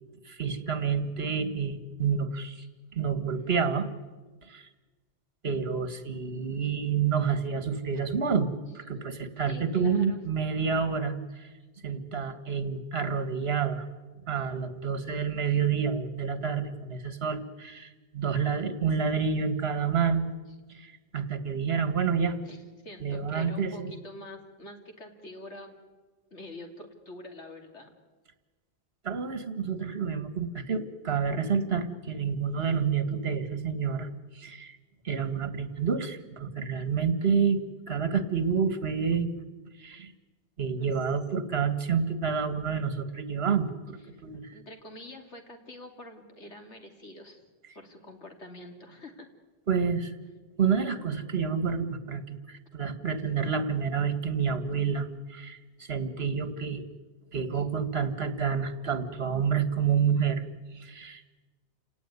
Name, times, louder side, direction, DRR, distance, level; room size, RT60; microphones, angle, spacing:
voice 1, 0.3-2.7 2.9-3.9 4.4-4.7 5.4-8.5 8.8-11.5 11.8-13.9 14.3-20.3 20.7-22.4 23.0-23.9 29.0-34.1 34.3-34.8 35.0-37.6 37.9-39.4 39.8-40.1 40.6-44.5 49.7-50.1 50.6-56.9 57.3-60.4 60.7-61.2, right 6 dB, 65° right, 11 dB, 1.9 m, -29 dB
voice 2, 9.5-10.2 15.1-15.6 22.4-25.7 26.3-27.9 44.1-44.2 44.5-47.5 47.7-49.3 52.7-52.9 57.5-57.6, left 1 dB, 90° left, 4 dB, 3.2 m, -46 dB
29.5 x 18.0 x 9.6 m, 1.3 s
omnidirectional pair, 1.1 m